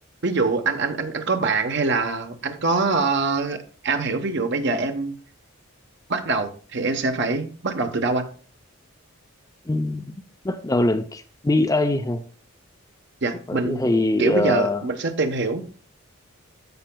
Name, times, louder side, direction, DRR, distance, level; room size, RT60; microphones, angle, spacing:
voice 1, 0.2-5.2 6.1-8.3 13.2-13.8 14.2-15.6, right 3 dB, 55° right, 1.0 m, -24 dB
voice 2, 9.7-10.1 10.4-12.2 13.5-14.8, left 2 dB, 15° left, 0.4 m, -22 dB
15.0 x 5.8 x 2.3 m
head